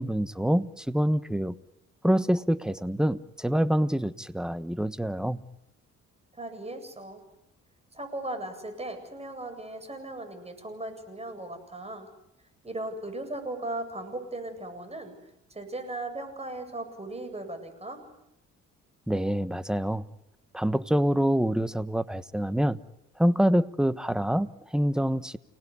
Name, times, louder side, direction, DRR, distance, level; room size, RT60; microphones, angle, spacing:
voice 1, 0.0-1.6 2.0-5.4 19.1-20.1 20.5-22.8 23.2-25.4, equal, ahead, 1.2 m, -26 dB
voice 2, 6.3-7.2 7.9-12.1 12.6-15.1 15.5-18.0, right 2 dB, 20° right, 7.9 m, -37 dB
29.5 x 19.5 x 9.8 m
cardioid pair, 90°, 30 cm